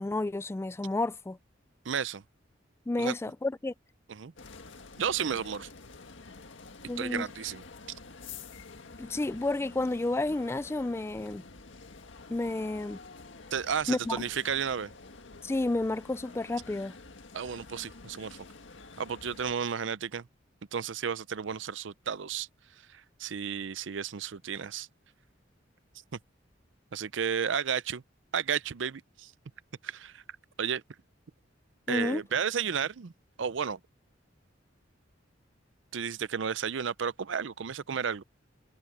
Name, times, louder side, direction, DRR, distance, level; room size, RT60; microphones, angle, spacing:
voice 1, 0.0-1.4 2.9-3.7 6.9-7.3 9.0-11.4 12.3-13.0 13.9-14.3 15.4-17.0 31.9-32.2, left 2 dB, 15° left, 0.3 m, -31 dB
voice 2, 1.9-2.2 3.0-3.1 4.1-4.3 5.0-5.7 7.0-7.6 13.5-14.9 17.3-18.4 19.0-20.2 20.7-22.5 22.9-24.9 26.9-28.0 28.3-29.3 29.8-30.2 30.6-30.8 31.9-33.1 33.4-33.8 35.9-38.2, right 7 dB, 75° right, 0.6 m, -32 dB
sound 1, 4.4-19.5, left 4 dB, 80° left, 1.8 m, -49 dB
Growling, 10.1-16.6, left 3 dB, 60° left, 6.2 m, -58 dB
head